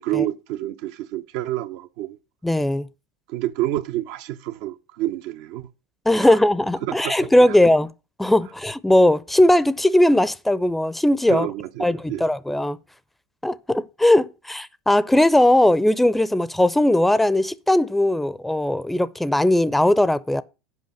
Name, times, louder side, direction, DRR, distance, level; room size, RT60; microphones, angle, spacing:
voice 1, 0.0-2.2 3.3-5.7 6.2-6.4 6.8-7.1 7.5-7.6 11.3-12.3, right 14 dB, 70° right, 0.7 m, -28 dB
voice 2, 2.4-2.9 6.1-7.9 8.2-11.5 11.8-12.8 13.4-20.4, left 1 dB, 5° left, 0.5 m, -19 dB
7.9 x 5.2 x 7.0 m
hypercardioid pair, 90°, 2 cm